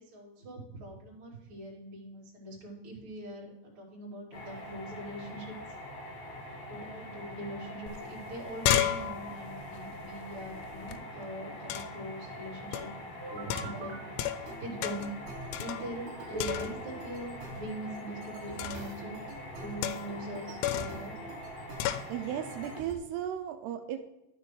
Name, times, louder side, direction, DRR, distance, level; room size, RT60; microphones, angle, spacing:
voice 1, 0.0-5.5 6.7-12.9 13.3-14.0 14.3-15.1 15.6-19.2 19.6-21.1, right 1 dB, 35° right, -4 dB, 2.7 m, -42 dB
sound 1, 4.3-22.8, equal, 50° left, 2.6 m, -44 dB
sound 2, 7.9-8.0 8.2-11.0 11.7-12.1 12.7-13.0 13.5-14.5 14.8-15.2 15.5-16.1 16.4-17.0 18.6-18.9 19.8-20.2 20.6-21.0 21.8-22.1, left 11 dB, 85° left, 2.9 m, -33 dB
sound 3, 13.2-14.0 14.5-22.9, right 2 dB, 70° right, 3.6 m, -45 dB
voice 2, 22.1-24.0, right 10 dB, 90° right, 6 dB, 2.3 m, -35 dB
12.5 x 6.0 x 3.2 m, 0.92 s
omnidirectional pair, 5.3 m